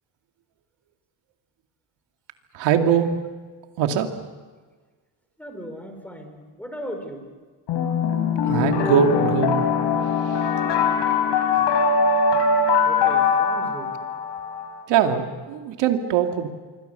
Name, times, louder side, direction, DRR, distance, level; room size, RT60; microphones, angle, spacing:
voice 1, 2.5-3.1 3.8-4.1 8.5-9.6 14.9-16.5, right 8 dB, 75° right, 5 dB, 2.5 m, -21 dB
voice 2, 5.4-7.3 12.8-13.9, equal, 5° left, 5 dB, 4.8 m, -37 dB
sound 1, 7.7-14.7, left 5 dB, 75° left, 4.3 m, -21 dB
27.0 x 23.5 x 6.9 m, 1.4 s
cardioid pair, 130°, 43 cm